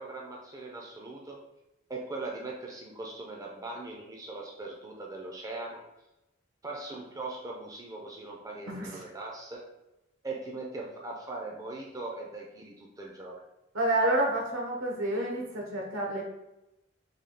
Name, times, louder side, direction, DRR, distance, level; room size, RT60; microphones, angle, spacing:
voice 1, 0.0-1.4 1.9-5.8 6.6-9.7 10.2-13.4, right 2 dB, 15° right, -1 dB, 0.4 m, -40 dB
voice 2, 13.7-16.2, right 1 dB, 85° right, -1 dB, 1.0 m, -29 dB
3.4 x 2.3 x 3.8 m, 0.94 s
head